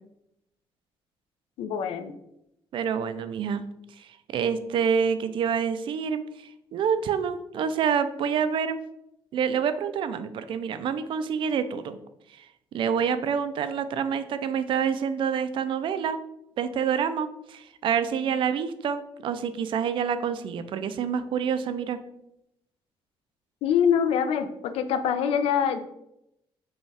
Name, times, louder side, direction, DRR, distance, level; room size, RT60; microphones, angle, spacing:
voice 1, 1.6-2.1 23.6-25.8, left 8 dB, 90° left, 10 dB, 0.4 m, -24 dB
voice 2, 2.7-3.7 4.0-8.8 9.3-12.0 12.3-16.2 16.6-22.0, right 7 dB, 60° right, 11 dB, 0.3 m, -27 dB
5.2 x 2.3 x 3.3 m, 0.82 s
cardioid pair, 135°, 10 cm